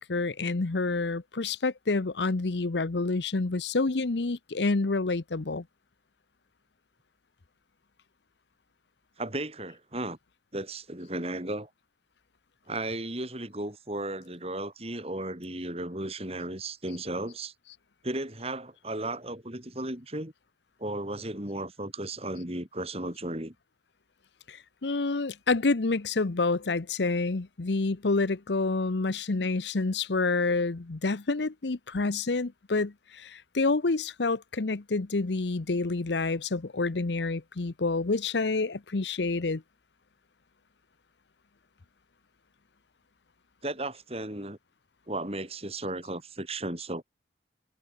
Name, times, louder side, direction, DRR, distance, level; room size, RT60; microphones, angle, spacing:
voice 1, 0.0-5.6 24.5-39.6, left 3 dB, 80° left, 0.9 m, -28 dB
voice 2, 9.2-10.2 10.5-11.7 12.7-17.5 18.0-20.3 20.8-23.5 43.6-44.6 45.1-47.0, right 1 dB, 35° right, 4.5 m, -35 dB
head